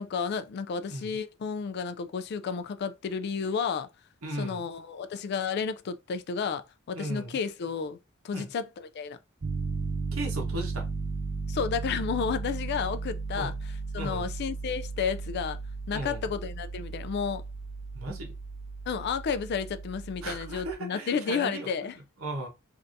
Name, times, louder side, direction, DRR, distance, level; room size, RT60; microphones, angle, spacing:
voice 1, 0.0-3.9 4.3-6.6 6.9-8.0 8.2-9.2 11.5-15.6 15.9-17.4 18.1-18.2 18.9-22.0, left 6 dB, 50° left, 0.3 m, -32 dB
voice 2, 4.2-4.6 6.9-7.4 8.3-8.5 10.1-10.8 13.3-13.5 14.0-14.3 15.9-16.2 17.9-18.3 20.2-21.7 22.2-22.5, right 1 dB, 90° right, 1.1 m, -36 dB
Piano, 9.4-20.7, right 4 dB, 30° right, 0.3 m, -35 dB
3.3 x 2.7 x 2.5 m
head